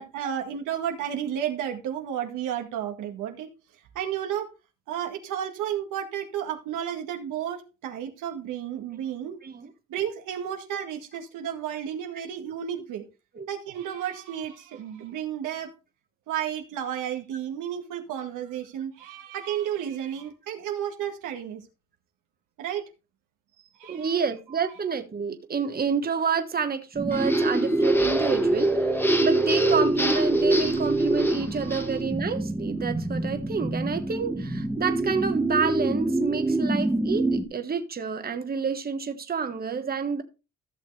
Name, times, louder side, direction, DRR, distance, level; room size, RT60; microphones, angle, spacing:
voice 1, 0.0-3.5 4.0-4.5 4.9-9.4 9.9-13.1 13.5-15.7 16.3-21.6 22.6-22.8 23.8-24.2 31.6-31.8, right 10 dB, 85° right, 1.8 m, -32 dB
voice 2, 23.9-40.2, right 5 dB, 30° right, 1.3 m, -29 dB
sound 1, 27.0-37.4, right 2 dB, 10° right, 1.5 m, -25 dB
sound 2, 27.1-32.0, left 1 dB, 5° left, 1.2 m, -34 dB
14.5 x 6.4 x 3.3 m
cardioid pair, 90°, 30 cm